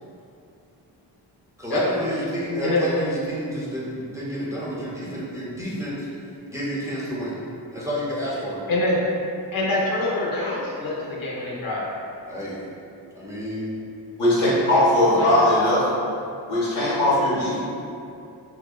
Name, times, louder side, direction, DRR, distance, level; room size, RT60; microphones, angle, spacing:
voice 1, 1.6-6.1 6.5-7.4 7.7-8.6 12.3-12.6 13.2-13.7, equal, 5° right, -7 dB, 0.6 m, -30 dB
voice 2, 9.5-11.8 15.1-15.3, left 2 dB, 50° left, -4 dB, 0.8 m, -25 dB
voice 3, 14.2-15.9 16.5-17.5, left 1 dB, 85° left, -9 dB, 1.1 m, -19 dB
2.7 x 2.1 x 2.3 m, 2.6 s
supercardioid pair, 45°, 46 cm